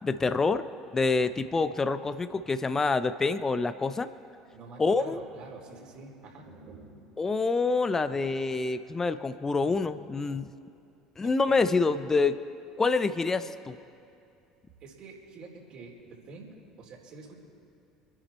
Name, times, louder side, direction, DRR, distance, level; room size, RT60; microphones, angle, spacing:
voice 1, 0.0-4.1 4.8-5.2 7.2-10.5 11.2-12.4 12.8-13.8, left 4 dB, 20° left, 12 dB, 0.7 m, -27 dB
voice 2, 4.5-7.1 8.9-9.0 11.2-12.0 14.8-17.4, right 3 dB, 50° right, -1 dB, 4.2 m, -48 dB
27.5 x 10.5 x 4.4 m, 2.6 s
figure-of-eight pair, 65°, 2 cm